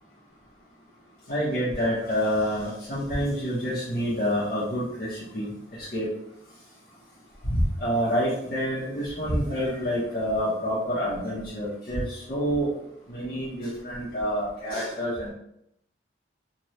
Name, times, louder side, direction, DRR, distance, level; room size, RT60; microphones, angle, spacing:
voice 1, 1.3-5.5 5.9-6.1 7.5-12.7 13.1-15.3, equal, 50° left, -9 dB, 0.8 m, -27 dB
3.1 x 2.2 x 2.6 m, 0.76 s
head